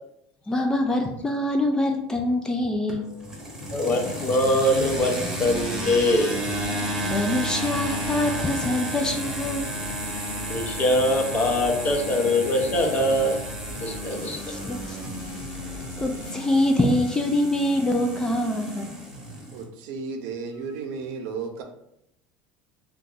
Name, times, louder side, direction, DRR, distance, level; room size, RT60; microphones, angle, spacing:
voice 1, 0.5-3.1 7.0-9.7 14.5-15.0 15.7-18.9, left 1 dB, 15° left, 3 dB, 0.3 m, -25 dB
sound 1, 2.9-19.6, equal, 10° right, 0.9 m, -32 dB
voice 2, 3.7-6.4 10.5-13.4 13.8-14.5, left 1 dB, 35° left, 2 dB, 0.7 m, -23 dB
sound 2, 3.8-16.5, left 2 dB, 80° left, 0.6 m, -41 dB
voice 3, 19.5-21.6, right 5 dB, 70° right, 4 dB, 0.5 m, -33 dB
2.6 x 2.2 x 3.8 m, 0.78 s
supercardioid pair, 115°, 5 cm